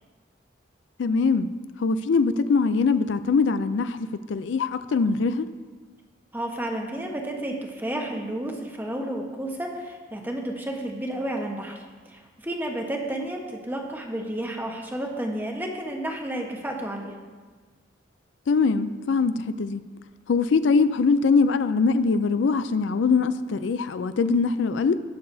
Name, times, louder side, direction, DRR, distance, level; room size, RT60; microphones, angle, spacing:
voice 1, 1.0-1.5 1.8-5.5 18.5-19.8 20.3-24.9, left 4 dB, 80° left, 12 dB, 0.4 m, -22 dB
voice 2, 6.3-17.2, right 1 dB, 10° right, 1 dB, 1.1 m, -31 dB
18.5 x 6.7 x 2.7 m, 1.4 s
head